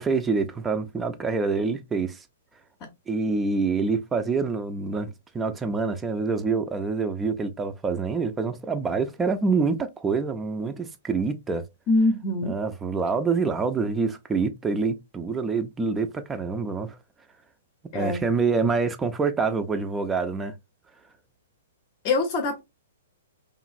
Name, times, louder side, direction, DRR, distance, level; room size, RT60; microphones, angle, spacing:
voice 1, 0.0-2.2 3.1-11.6 12.4-17.0 17.9-20.5, right 4 dB, 15° right, 0.4 m, -26 dB
voice 2, 11.9-12.6 17.9-18.2 22.0-22.6, left 2 dB, 40° left, 0.7 m, -24 dB
3.0 x 2.4 x 2.4 m
hypercardioid pair, 120°, 0 cm